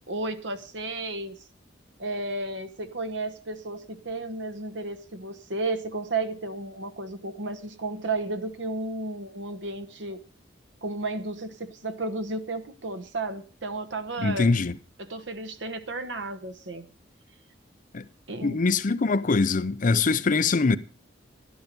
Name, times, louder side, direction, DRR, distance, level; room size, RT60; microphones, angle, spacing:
voice 1, 0.1-1.4 2.0-10.2 10.8-14.5 15.0-16.9 18.3-18.6, right 2 dB, 70° right, 1.1 m, -33 dB
voice 2, 14.2-14.8 17.9-18.1 18.4-20.8, left 4 dB, 45° left, 0.6 m, -23 dB
12.0 x 11.5 x 5.2 m
head